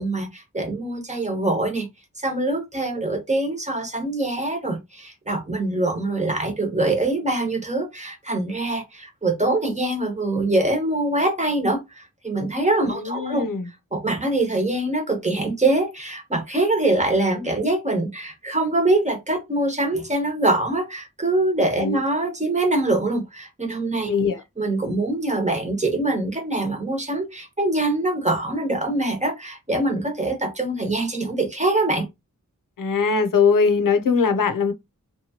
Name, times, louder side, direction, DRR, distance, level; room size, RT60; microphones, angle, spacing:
voice 1, 0.0-1.9 2.2-13.4 13.9-24.1 24.6-32.1, right 2 dB, 20° right, 0.9 m, -24 dB
voice 2, 12.9-13.6 21.8-22.0 24.1-24.4 32.8-34.7, left 5 dB, 90° left, 0.6 m, -21 dB
2.8 x 2.3 x 2.8 m
wide cardioid pair, 75°, 32 cm